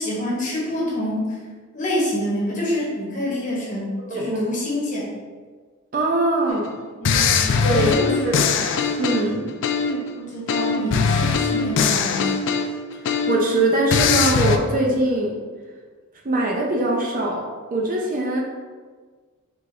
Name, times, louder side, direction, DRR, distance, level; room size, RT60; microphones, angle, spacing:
voice 1, 0.0-1.4 1.7-5.1 7.0-8.5 10.2-12.3, left 1 dB, 35° left, -4 dB, 1.1 m, -27 dB
voice 2, 4.1-4.5 5.9-6.7 7.6-8.4 9.0-9.5 13.0-15.4 16.2-18.4, right 1 dB, 35° right, -1 dB, 0.5 m, -22 dB
sound 1, 6.5-6.7 7.0-10.1 10.5-13.5 13.9-14.6, left 5 dB, 55° left, 0.3 m, -21 dB
3.9 x 3.7 x 3.3 m, 1.5 s
head